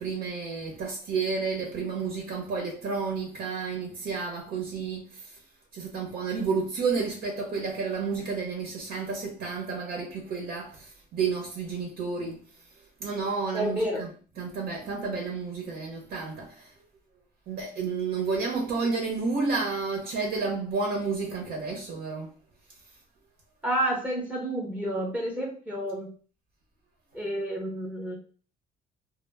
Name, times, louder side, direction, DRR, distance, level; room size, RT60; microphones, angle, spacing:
voice 1, 0.0-5.4 5.7-12.4 13.0-14.1 14.4-16.7 17.5-22.4, right 4 dB, 65° right, 0.7 m, -31 dB
voice 2, 13.5-14.0 23.6-26.1 27.1-28.2, right 1 dB, 10° right, 0.7 m, -30 dB
2.1 x 2.0 x 3.3 m
cardioid pair, 110°, 17 cm